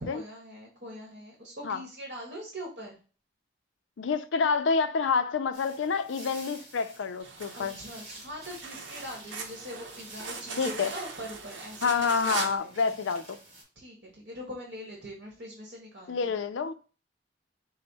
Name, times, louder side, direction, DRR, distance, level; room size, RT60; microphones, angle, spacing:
voice 1, 0.0-3.0 7.5-12.9 13.7-16.4, equal, 55° right, 1.3 m, -42 dB
voice 2, 4.0-7.8 10.6-10.9 11.8-13.4 16.1-16.7, left 5 dB, 85° left, 0.4 m, -28 dB
sound 1, 5.5-13.6, right 1 dB, 35° right, 1.7 m, -49 dB
sound 2, 7.2-12.6, right 4 dB, 80° right, 0.8 m, -40 dB
5.3 x 2.1 x 4.0 m
head